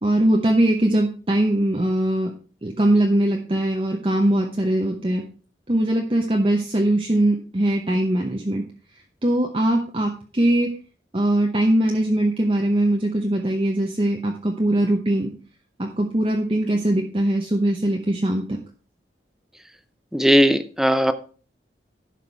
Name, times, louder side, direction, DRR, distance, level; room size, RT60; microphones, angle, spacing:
voice 1, 0.0-2.3 2.6-5.2 5.7-8.6 9.2-10.7 11.1-15.3 15.8-18.4, right 1 dB, 30° right, 1 dB, 0.9 m, -21 dB
voice 2, 20.1-21.1, equal, 5° right, 11 dB, 0.5 m, -17 dB
11.0 x 5.9 x 4.5 m, 0.39 s
head